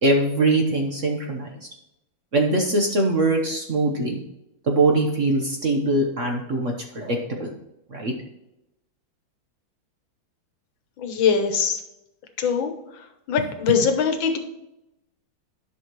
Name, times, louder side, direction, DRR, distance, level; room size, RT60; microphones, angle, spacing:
voice 1, 0.0-1.7 2.3-4.2 4.6-7.5 7.9-8.1, right 2 dB, 45° right, 1 dB, 1.1 m, -22 dB
voice 2, 11.0-11.8 12.4-12.7 13.3-14.4, left 6 dB, 70° left, 6 dB, 1.7 m, -22 dB
11.0 x 5.9 x 3.1 m, 0.89 s
omnidirectional pair, 2.3 m